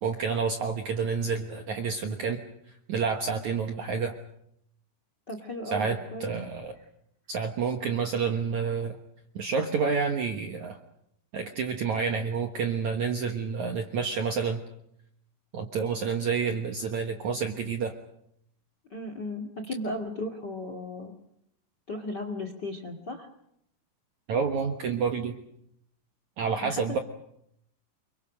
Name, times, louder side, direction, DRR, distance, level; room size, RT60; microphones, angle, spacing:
voice 1, 0.0-2.4 2.9-4.2 5.7-6.7 7.3-9.0 9.4-10.8 11.3-14.6 15.5-17.9 24.3-25.4 26.4-27.0, right 5 dB, 65° right, 5 dB, 2.0 m, -29 dB
voice 2, 5.3-6.3 11.9-12.0 18.9-21.1 21.9-23.3 26.6-27.0, left 1 dB, 35° left, 7 dB, 1.7 m, -36 dB
29.0 x 23.5 x 6.5 m, 0.75 s
omnidirectional pair, 5.1 m